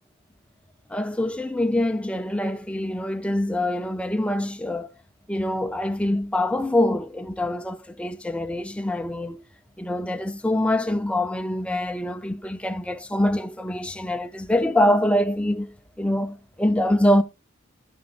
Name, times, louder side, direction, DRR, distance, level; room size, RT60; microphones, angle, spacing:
voice 1, 0.9-4.9 5.3-9.4 9.8-17.2, left 1 dB, 5° left, 0.6 m, -24 dB
14.5 x 6.3 x 2.5 m
head